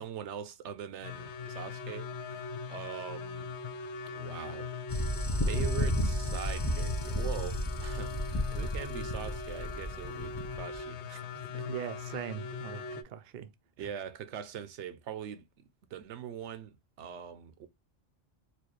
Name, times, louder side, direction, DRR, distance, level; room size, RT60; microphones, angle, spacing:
voice 1, 0.0-3.5 4.1-5.1 5.5-11.7 13.8-15.4 15.9-17.7, right 8 dB, 80° right, 0.9 m, -42 dB
sound 1, 1.0-13.0, left 5 dB, 75° left, 0.9 m, -41 dB
sound 2, 4.9-10.8, equal, 35° left, 0.3 m, -32 dB
voice 2, 11.5-13.5 13.8-13.9, right 10 dB, 60° right, 0.5 m, -41 dB
4.3 x 2.3 x 3.0 m
omnidirectional pair, 1.2 m